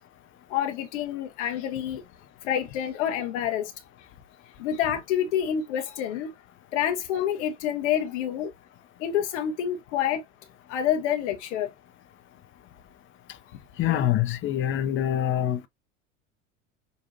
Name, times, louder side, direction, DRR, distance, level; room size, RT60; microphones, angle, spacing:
voice 1, 0.5-2.0 2.4-3.7 4.6-6.3 6.7-8.5 9.0-10.2 10.7-11.7 13.9-14.0, left 10 dB, 65° left, 0.9 m, -27 dB
voice 2, 13.8-15.7, left 11 dB, 35° left, 0.6 m, -25 dB
5.2 x 2.4 x 2.6 m
hypercardioid pair, 75°, 37 cm